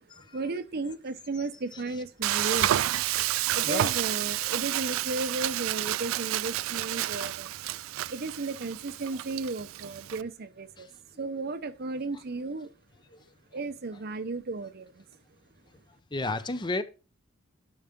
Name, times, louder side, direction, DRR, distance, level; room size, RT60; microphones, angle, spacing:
voice 1, 0.3-2.8 3.5-7.5 8.1-10.9 11.2-12.7 13.5-15.0, right 3 dB, 50° right, 0.7 m, -34 dB
Frying (food), 2.2-10.2, right 14 dB, 75° right, 0.3 m, -30 dB
voice 2, 16.1-16.8, left 2 dB, 20° left, 0.6 m, -33 dB
11.0 x 5.6 x 3.6 m
head